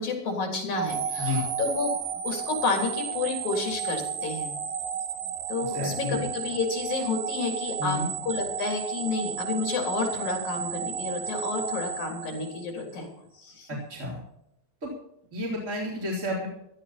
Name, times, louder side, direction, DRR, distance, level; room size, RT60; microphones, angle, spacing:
voice 1, 0.0-4.5 5.5-8.0 8.2-13.1 13.4-13.7, left 4 dB, 70° left, 1 dB, 4.9 m, -30 dB
sound 1, 0.7-12.9, right 7 dB, 85° right, 3.1 m, -33 dB
voice 2, 5.6-6.2 7.8-8.1 13.7-14.2 14.8-14.9 15.3-16.5, left 2 dB, 25° right, -4 dB, 4.1 m, -31 dB
16.5 x 13.5 x 4.3 m, 0.78 s
omnidirectional pair, 3.4 m